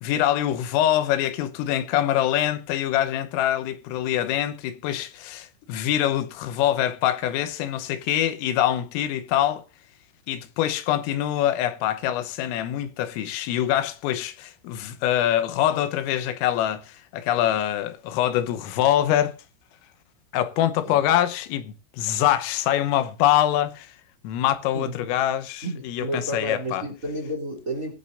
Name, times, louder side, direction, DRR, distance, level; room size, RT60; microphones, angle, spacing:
voice 1, 0.0-9.6 10.3-19.4 20.3-24.0 24.2-26.8, left 12 dB, 85° left, 3.6 m, -24 dB
voice 2, 20.8-21.2 24.7-24.9 25.6-27.9, right 1 dB, 20° right, 2.5 m, -31 dB
20.5 x 8.6 x 2.6 m
omnidirectional pair, 5.8 m